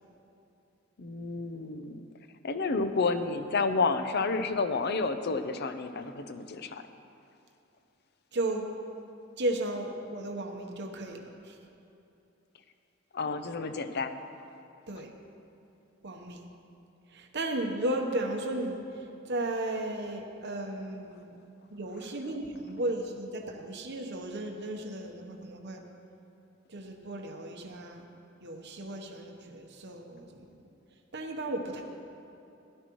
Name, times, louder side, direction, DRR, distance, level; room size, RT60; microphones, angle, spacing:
voice 1, 1.0-2.0 2.4-6.8 13.1-14.2, left 4 dB, 55° left, 9 dB, 0.6 m, -30 dB
voice 2, 8.3-8.7 9.4-11.6 14.9-15.1 16.0-16.5 17.1-18.8 19.2-21.4 21.7-25.8 26.7-28.0 28.4-30.4 31.1-31.8, right 1 dB, 55° right, 2 dB, 1.0 m, -34 dB
16.5 x 11.5 x 3.1 m, 2.8 s
head